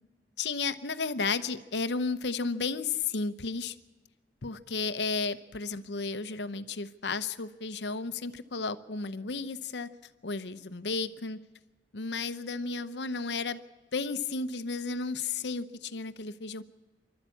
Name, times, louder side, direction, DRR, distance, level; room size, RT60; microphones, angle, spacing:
voice 1, 0.4-3.7 4.4-9.9 10.2-11.4 11.9-13.6 13.9-16.6, left 4 dB, 75° left, 13 dB, 0.8 m, -33 dB
26.0 x 12.0 x 8.4 m, 1.3 s
head